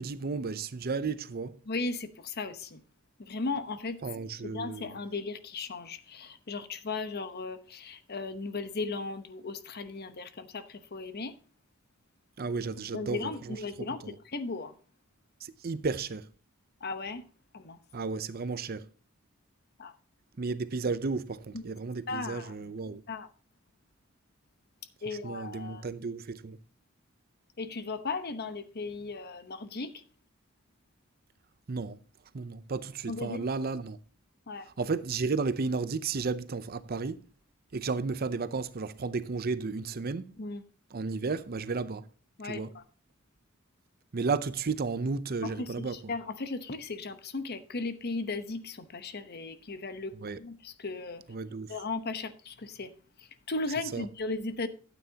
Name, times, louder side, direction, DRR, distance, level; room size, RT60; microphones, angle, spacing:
voice 1, 0.0-1.6 4.0-5.0 12.4-14.2 15.4-16.3 17.9-18.9 20.4-23.0 25.1-26.6 31.7-32.0 32.3-34.0 34.8-37.2 37.7-40.3 40.9-42.1 42.4-42.8 44.1-46.0 50.2-50.4 51.3-51.7 53.9-54.1, right 4 dB, 45° right, 0.6 m, -33 dB
voice 2, 1.7-2.8 3.2-4.0 4.4-11.3 12.9-14.7 16.8-17.2 17.5-17.8 19.8-19.9 21.5-21.7 22.1-22.5 23.1-23.3 25.0-25.9 27.6-30.0 33.1-33.5 34.5-34.7 40.4-40.6 42.4-42.8 45.4-51.2 51.7-52.9 53.2-54.7, left 3 dB, 50° left, 0.9 m, -36 dB
12.5 x 9.2 x 2.8 m
head